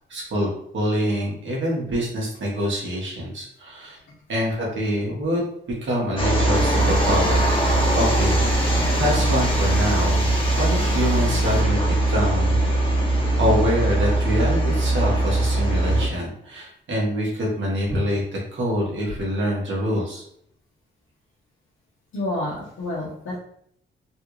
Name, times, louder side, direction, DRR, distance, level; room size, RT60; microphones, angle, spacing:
voice 1, 0.1-4.0 4.3-5.4 5.8-7.5 7.9-10.3 10.6-12.6 13.1-20.2, equal, 65° right, -3 dB, 1.5 m, -25 dB
sound 1, 6.2-16.1, right 1 dB, 25° left, 1.2 m, -21 dB
sound 2, 6.5-11.6, left 1 dB, 5° left, 0.6 m, -37 dB
voice 2, 22.1-23.4, left 1 dB, 65° left, -6 dB, 1.0 m, -29 dB
3.4 x 2.4 x 3.1 m, 0.68 s
supercardioid pair, 55°, 21 cm